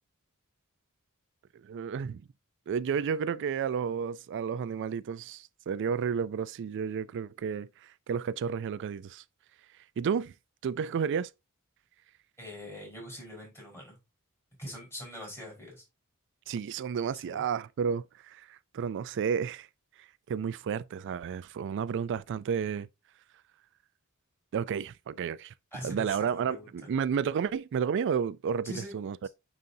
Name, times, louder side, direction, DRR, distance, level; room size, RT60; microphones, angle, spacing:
voice 1, 1.6-2.2 2.7-9.2 10.0-10.3 10.6-11.3 16.5-19.7 20.0-22.9 24.5-25.5 25.8-29.3, right 7 dB, 55° right, 0.3 m, -32 dB
voice 2, 12.4-14.0 14.6-15.8 17.1-17.4 25.7-26.9 28.6-28.9 29.2-29.3, left 1 dB, 10° left, 4.6 m, -43 dB
9.3 x 4.0 x 2.7 m
head